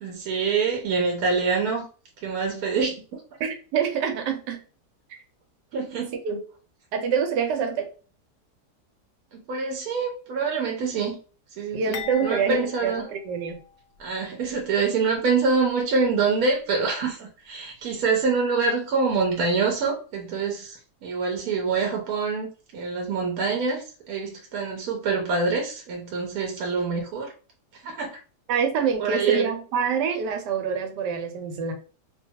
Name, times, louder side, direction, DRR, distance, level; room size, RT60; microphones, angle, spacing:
voice 1, 0.0-1.9 2.2-3.0 5.7-6.1 9.3-11.2 11.6-13.1 14.0-27.3 27.7-28.2 29.0-29.5, right 4 dB, 70° right, 1.1 m, -25 dB
voice 2, 3.4-4.6 5.1-5.2 6.2-6.4 6.9-7.9 11.7-13.6 28.5-31.7, right 6 dB, 85° right, 1.3 m, -26 dB
sound 1, 11.9-14.1 14.5-14.6 15.5-15.6, left 7 dB, 70° left, 0.9 m, -40 dB
2.8 x 2.2 x 2.7 m
omnidirectional pair, 1.8 m